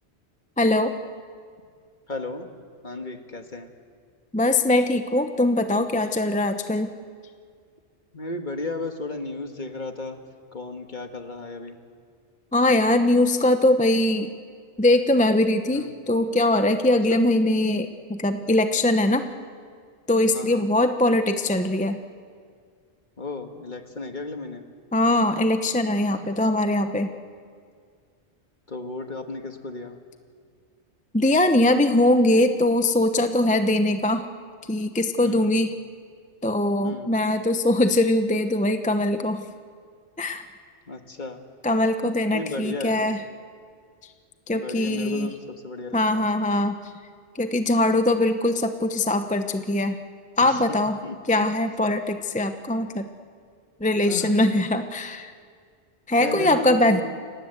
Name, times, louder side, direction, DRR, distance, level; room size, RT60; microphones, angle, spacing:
voice 1, 0.6-1.0 4.3-6.9 12.5-14.3 14.8-19.3 20.1-22.0 24.9-27.1 31.1-34.3 34.7-35.7 36.4-39.5 40.2-40.4 41.6-43.2 44.5-45.3 45.9-46.7 47.4-50.0 50.4-51.0 51.3-53.1 53.8-55.3 56.1-57.0, left 1 dB, 10° left, 8 dB, 0.7 m, -21 dB
voice 2, 2.1-2.5 2.8-3.7 8.1-10.2 10.5-11.8 15.7-15.9 16.8-17.2 20.3-20.7 23.2-24.6 28.7-30.0 35.2-35.5 36.8-37.2 40.9-41.4 42.3-43.0 44.5-46.3 50.4-50.6 51.0-51.5 54.1-54.3 56.2-57.0, left 2 dB, 45° left, 5 dB, 1.7 m, -34 dB
29.5 x 19.0 x 8.1 m, 2.1 s
omnidirectional pair, 1.2 m